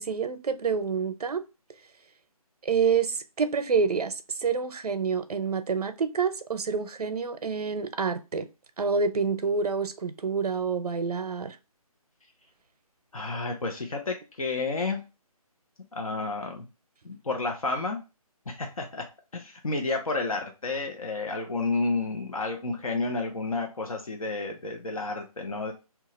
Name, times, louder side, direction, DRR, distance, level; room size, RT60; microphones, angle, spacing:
voice 1, 0.0-1.4 2.6-8.5 8.8-11.6, right 5 dB, 85° right, 0.6 m, -27 dB
voice 2, 13.1-15.0 15.9-16.7 17.0-18.0 18.5-19.0 19.3-25.7, left 3 dB, 65° left, 0.7 m, -31 dB
2.9 x 2.4 x 4.1 m
hypercardioid pair, 180°, 19 cm